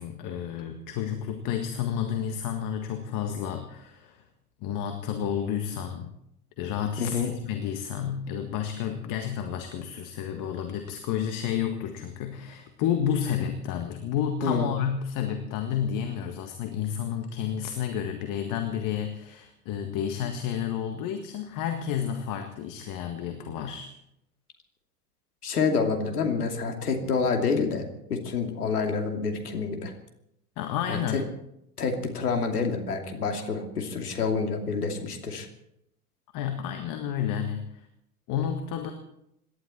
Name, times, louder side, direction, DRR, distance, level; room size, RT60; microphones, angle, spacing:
voice 1, 0.0-4.2 4.6-6.1 6.6-23.9 30.6-31.3 36.3-37.6 38.3-38.9, left 9 dB, 45° left, 6 dB, 1.7 m, -31 dB
voice 2, 7.0-7.3 14.4-14.7 25.4-29.9 30.9-31.2 31.8-35.5, left 5 dB, 75° left, 3 dB, 2.8 m, -28 dB
27.0 x 11.5 x 4.4 m, 0.79 s
figure-of-eight pair, 75°, 46 cm